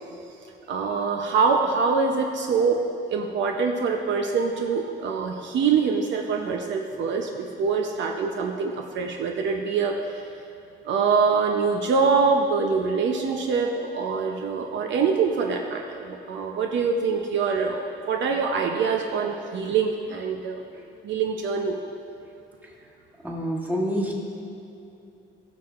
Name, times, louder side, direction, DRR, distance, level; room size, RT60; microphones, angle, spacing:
voice 1, 0.7-2.8 3.1-9.9 10.8-17.8 18.1-20.6 21.0-21.8, right 5 dB, 70° right, 2 dB, 0.6 m, -24 dB
voice 2, 23.2-24.1, equal, 10° right, -4 dB, 1.7 m, -27 dB
15.5 x 6.2 x 2.4 m, 2.8 s
cardioid pair, 90°, 20 cm